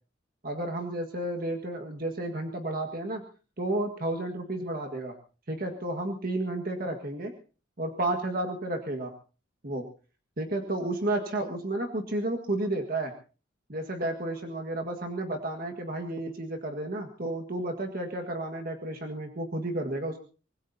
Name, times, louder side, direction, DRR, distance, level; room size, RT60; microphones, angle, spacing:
voice 1, 0.4-3.2 3.6-5.1 5.5-7.3 7.8-9.1 9.6-9.8 10.4-13.1 13.7-20.2, right 1 dB, 50° right, 3 dB, 1.8 m, -32 dB
25.0 x 20.0 x 2.8 m, 0.36 s
head